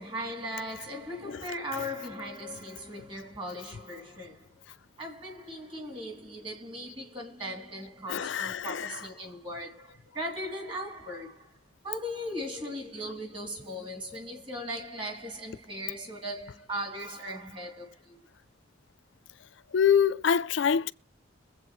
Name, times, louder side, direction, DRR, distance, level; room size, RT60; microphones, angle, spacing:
voice 1, 0.0-4.5 5.0-11.6 11.8-18.3, equal, 25° right, 2.7 m, -38 dB
voice 2, 8.1-8.9 19.7-20.9, left 7 dB, 75° left, 0.5 m, -25 dB
23.5 x 8.1 x 3.1 m
head